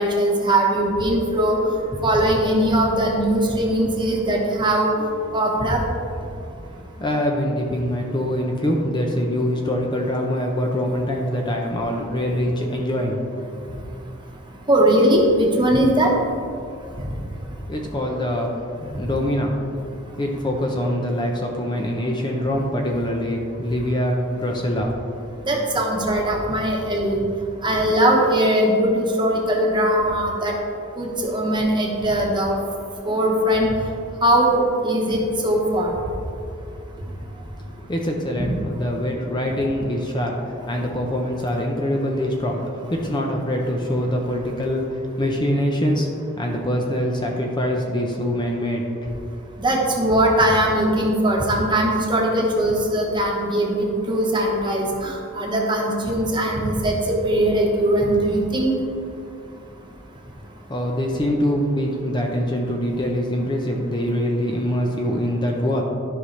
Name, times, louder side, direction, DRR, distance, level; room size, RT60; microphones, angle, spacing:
voice 1, 0.0-1.5 2.0-5.1 5.3-5.8 14.7-16.1 25.4-27.2 27.6-30.5 31.0-32.6 33.0-33.7 34.2-35.9 49.6-58.7, right 1 dB, 25° right, -1 dB, 1.2 m, -20 dB
voice 2, 7.0-13.2 17.6-19.5 20.1-24.9 37.7-49.2 60.7-65.8, equal, 20° left, 0 dB, 0.7 m, -24 dB
13.0 x 5.4 x 3.3 m, 2.6 s
head